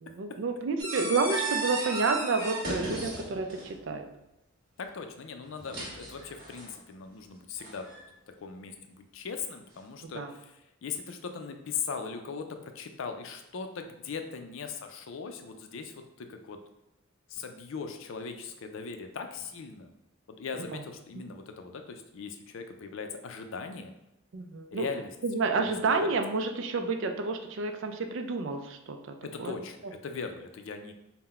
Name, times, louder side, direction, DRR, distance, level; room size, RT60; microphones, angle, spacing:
voice 1, 0.0-4.1 10.0-10.3 20.6-20.8 24.3-24.9 25.2-29.5, right 4 dB, 60° right, 6 dB, 0.4 m, -30 dB
sound 1, 0.8-3.8 5.4-6.7 7.6-8.0, right 2 dB, 45° right, 1.3 m, -35 dB
voice 2, 4.8-7.9 8.4-16.6 17.3-19.9 20.4-23.9 24.7-25.1 25.4-26.1 29.2-30.9, left 5 dB, 65° left, 6 dB, 0.4 m, -39 dB
3.9 x 2.1 x 4.2 m, 0.90 s
head